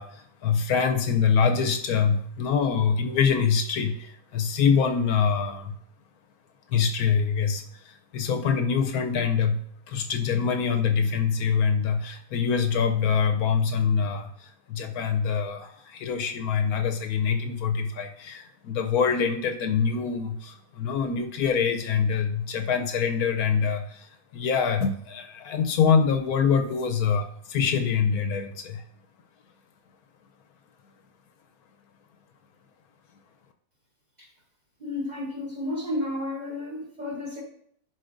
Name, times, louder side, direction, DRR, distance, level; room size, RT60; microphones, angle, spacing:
voice 1, 0.0-5.7 6.7-9.6 9.9-28.8, left 6 dB, 75° left, 5 dB, 1.0 m, -25 dB
voice 2, 34.8-37.4, left 1 dB, 30° right, -1 dB, 0.9 m, -32 dB
10.5 x 4.4 x 2.5 m, 0.66 s
omnidirectional pair, 1.7 m